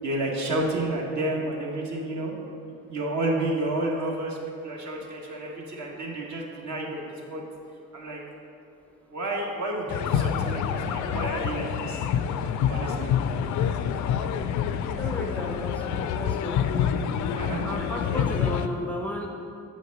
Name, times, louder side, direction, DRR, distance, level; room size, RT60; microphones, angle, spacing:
voice 1, 0.0-2.3 2.9-4.4 4.6-7.0 7.3-7.4 7.9-8.2 9.1-12.0 12.7-13.1 17.3-17.6, right 1 dB, 45° right, -1 dB, 1.3 m, -30 dB
sound 1, 9.9-18.7, left 8 dB, 50° left, 0.5 m, -27 dB
voice 2, 14.8-16.6 17.6-19.3, left 1 dB, 5° left, 0 dB, 0.6 m, -34 dB
7.4 x 5.3 x 3.9 m, 2.5 s
figure-of-eight pair, 45°, 39 cm